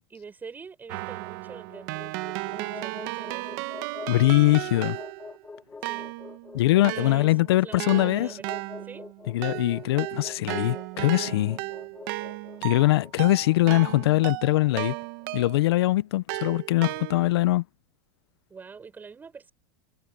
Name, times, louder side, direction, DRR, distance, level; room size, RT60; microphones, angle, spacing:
voice 1, 0.1-2.1 2.5-3.7 5.8-6.1 6.7-7.3 7.6-9.1 18.5-19.5, right 5 dB, 15° right, 5.9 m, -44 dB
Keyboard (musical), 0.9-5.4 5.8-15.7 16.3-17.5, right 22 dB, 55° right, 1.3 m, -35 dB
sound 1, 1.1-15.4, left 4 dB, 10° left, 3.8 m, -45 dB
voice 2, 4.1-5.0 6.5-8.3 9.3-11.6 12.6-15.0 15.3-17.6, left 17 dB, 80° left, 0.7 m, -22 dB
supercardioid pair, 155°, 13 cm